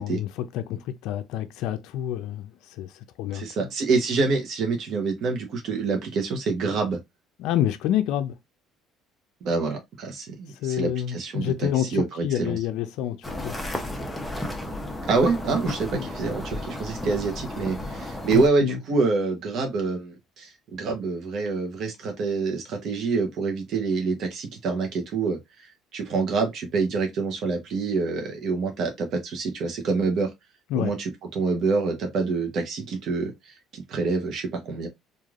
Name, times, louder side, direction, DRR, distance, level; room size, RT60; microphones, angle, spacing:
voice 1, 0.0-2.4 2.8-2.9 3.2-3.5 7.4-8.4 10.6-13.6 15.9-16.1 18.3-18.8 30.7-30.9, left 11 dB, 75° left, 0.4 m, -28 dB
voice 2, 3.3-7.0 9.4-12.6 15.1-30.3 30.8-34.9, right 4 dB, 55° right, 0.8 m, -26 dB
sound 1, 13.2-18.5, left 1 dB, 10° left, 0.6 m, -33 dB
3.2 x 2.4 x 2.4 m
cardioid pair, 110°, 0 cm